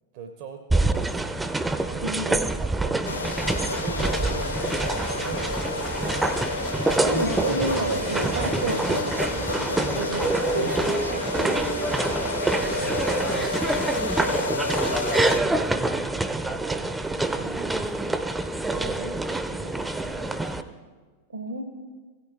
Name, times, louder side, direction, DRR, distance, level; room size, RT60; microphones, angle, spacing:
voice 1, 0.1-1.3 1.8-3.4 3.8-5.6 5.9-6.1 12.5-14.7 15.1-16.2 16.6-18.3 18.7-20.7, right 6 dB, 45° right, 5 dB, 0.7 m, -40 dB
sound 1, 0.7-20.6, right 2 dB, 10° right, 0.6 m, -26 dB
voice 2, 2.0-2.4 7.0-11.8 21.3-21.6, right 2 dB, 75° right, 7 dB, 1.2 m, -31 dB
sound 2, 3.1-15.4, left 4 dB, 75° left, 0.3 m, -31 dB
16.0 x 6.8 x 3.6 m, 1.4 s
figure-of-eight pair, 90°, 0 cm